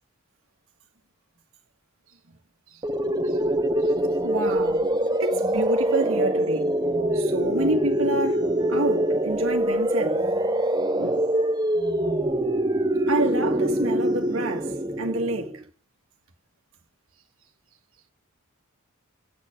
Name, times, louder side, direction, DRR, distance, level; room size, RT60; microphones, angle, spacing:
sound 1, 2.8-15.6, right 1 dB, 20° right, 0.6 m, -24 dB
voice 1, 4.2-4.9 5.2-6.8 7.1-10.2 11.0-11.3 13.1-15.6, right 2 dB, 65° right, 1.8 m, -28 dB
9.5 x 6.8 x 6.5 m
head